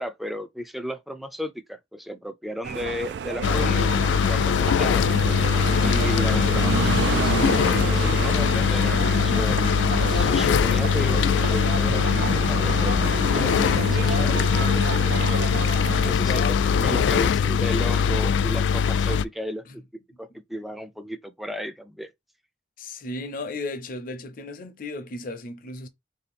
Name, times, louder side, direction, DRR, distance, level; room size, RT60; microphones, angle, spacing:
voice 1, 0.0-3.9 4.3-5.1 5.8-9.6 10.1-14.5 16.1-16.5 16.8-19.9 20.2-22.1, equal, ahead, 0.4 m, -34 dB
sound 1, 2.6-16.1, right 6 dB, 70° right, 0.3 m, -30 dB
sound 2, 3.4-19.2, left 7 dB, 85° left, 0.3 m, -21 dB
voice 2, 16.2-17.1 19.7-19.8 22.8-25.9, left 2 dB, 50° left, 0.6 m, -34 dB
3.6 x 2.8 x 4.2 m
head